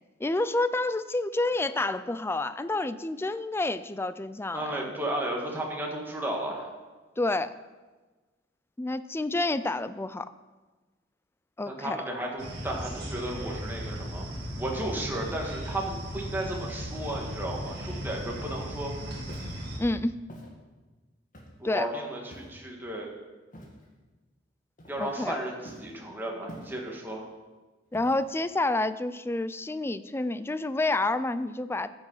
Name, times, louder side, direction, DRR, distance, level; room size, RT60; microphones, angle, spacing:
voice 1, 0.2-4.9 7.2-7.5 8.8-10.3 11.6-12.0 19.8-20.2 21.6-21.9 25.0-25.4 27.9-31.9, left 2 dB, 15° left, 13 dB, 0.4 m, -29 dB
voice 2, 4.5-6.7 11.7-14.3 14.6-18.9 21.6-23.1 24.9-27.2, right 1 dB, 10° right, -1 dB, 1.8 m, -34 dB
sound 1, 12.4-19.8, equal, 60° right, 2.1 m, -37 dB
Walk footsteps, 19.2-19.6 20.3-20.5 21.3-21.7 22.3-22.7 23.5-23.9 24.8-25.2 25.6-26.0 26.5-27.0 27.9-28.4, equal, 45° left, 2.0 m, -46 dB
15.0 x 6.2 x 5.6 m, 1.3 s
head